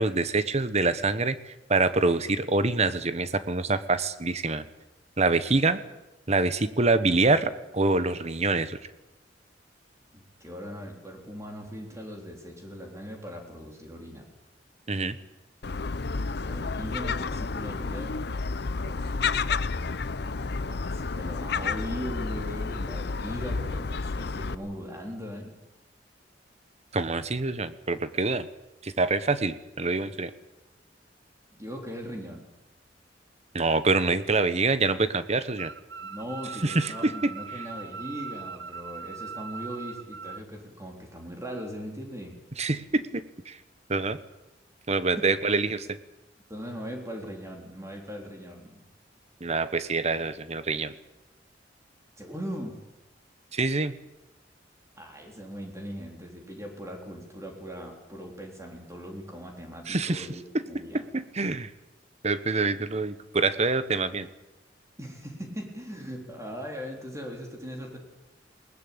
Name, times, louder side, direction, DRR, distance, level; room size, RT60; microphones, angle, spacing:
voice 1, 0.0-4.6 5.2-5.8 6.3-8.8 14.9-15.2 26.9-28.5 28.8-30.3 33.5-35.7 36.6-37.3 42.6-43.6 43.9-44.2 44.9-46.0 49.4-50.9 53.5-53.9 59.9-60.3 60.5-60.6 60.9-61.7 62.2-64.3, right 3 dB, 40° right, 13 dB, 1.2 m, -26 dB
voice 2, 10.1-14.3 16.4-18.2 18.8-19.4 20.1-25.5 31.5-32.4 36.0-42.4 45.2-45.3 46.5-48.8 52.2-52.8 55.0-61.0 65.0-68.0, equal, 15° right, 2 dB, 3.9 m, -39 dB
Gull seagull, 15.6-24.5, left 4 dB, 65° left, 0.7 m, -31 dB
sound 1, 35.6-40.4, right 5 dB, 75° right, 0.8 m, -40 dB
21.0 x 19.5 x 8.8 m, 0.98 s
head